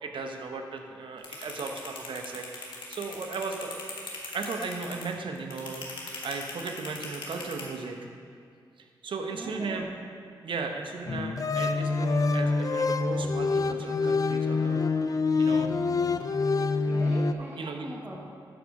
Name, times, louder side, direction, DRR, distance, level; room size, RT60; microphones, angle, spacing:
voice 1, 0.0-4.1 4.3-5.8 6.2-8.0 9.0-9.8 10.4-14.8 15.4-15.7 17.6-17.8, right 4 dB, 70° right, 4 dB, 1.0 m, -36 dB
sound 1, 1.2-7.6, left 4 dB, 70° left, 1.8 m, -39 dB
voice 2, 9.3-9.9 16.8-18.2, right 1 dB, 20° right, -4 dB, 1.3 m, -41 dB
sound 2, 11.1-17.3, left 4 dB, 45° left, 0.5 m, -26 dB
12.5 x 4.8 x 5.3 m, 2.3 s
supercardioid pair, 45°, 9 cm